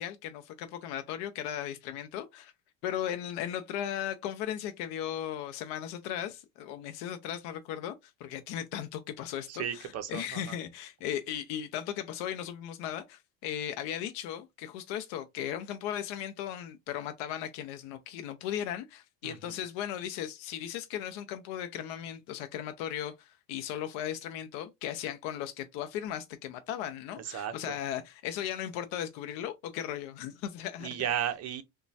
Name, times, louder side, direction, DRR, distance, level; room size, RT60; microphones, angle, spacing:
voice 1, 0.0-2.5 2.8-30.9, left 10 dB, 75° left, 0.6 m, -37 dB
voice 2, 9.5-10.6 19.2-19.6 27.2-27.8 30.8-31.6, right 9 dB, 35° right, 0.5 m, -35 dB
3.0 x 2.2 x 2.6 m
cardioid pair, 135°, 48 cm